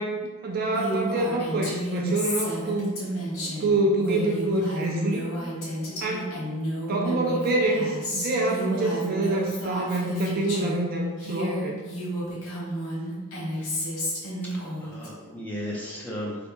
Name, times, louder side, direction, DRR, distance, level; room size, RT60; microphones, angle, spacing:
voice 1, 0.0-2.9 3.4-5.3 6.0-6.4 6.9-11.8, right 2 dB, 45° right, 0 dB, 0.4 m, -26 dB
Female speech woman speaking, 0.7-10.8 11.2-15.1, equal, 80° left, 1.4 m, -31 dB
voice 2, 13.5-13.8 14.4-16.4, equal, 10° left, -5 dB, 0.7 m, -36 dB
3.3 x 2.3 x 4.2 m, 1.3 s
head